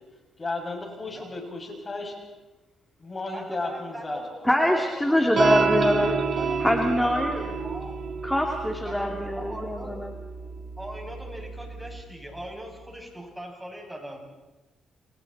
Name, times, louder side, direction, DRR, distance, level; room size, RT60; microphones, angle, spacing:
voice 1, 0.4-2.1 3.0-4.2, left 3 dB, 30° left, 2 dB, 6.6 m, -34 dB
voice 2, 1.0-1.3 3.3-5.3 6.4-8.0 8.9-10.0 10.8-14.2, equal, 10° right, 1 dB, 7.2 m, -40 dB
voice 3, 4.4-6.2 6.6-7.4 8.2-10.1, left 1 dB, 5° left, 2 dB, 2.9 m, -24 dB
sound 1, 5.4-12.0, right 5 dB, 45° right, 1.6 m, -30 dB
30.0 x 27.0 x 4.3 m, 1.1 s
cardioid pair, 80°, 0 cm